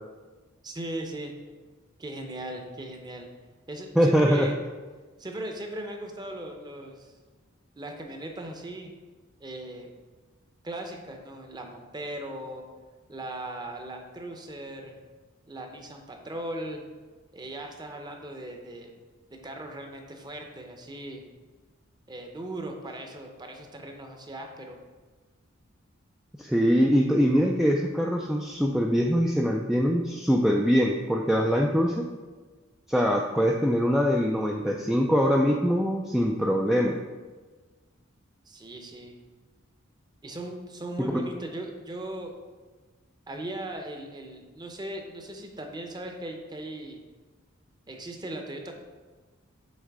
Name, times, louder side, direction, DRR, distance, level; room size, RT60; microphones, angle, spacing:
voice 1, 0.6-1.3 2.0-3.3 3.7-4.6 5.2-7.1 7.8-8.9 9.4-9.9 10.6-12.6 13.1-15.0 15.5-16.8 17.3-18.9 19.4-21.2 22.1-24.8 38.5-39.1 40.2-42.3 43.3-47.0 47.9-48.7, right 1 dB, 20° right, 3 dB, 0.7 m, -38 dB
voice 2, 4.0-4.5 26.4-32.1 32.9-37.0 41.1-41.2, equal, ahead, -1 dB, 0.3 m, -23 dB
7.4 x 3.1 x 4.7 m, 1.3 s
head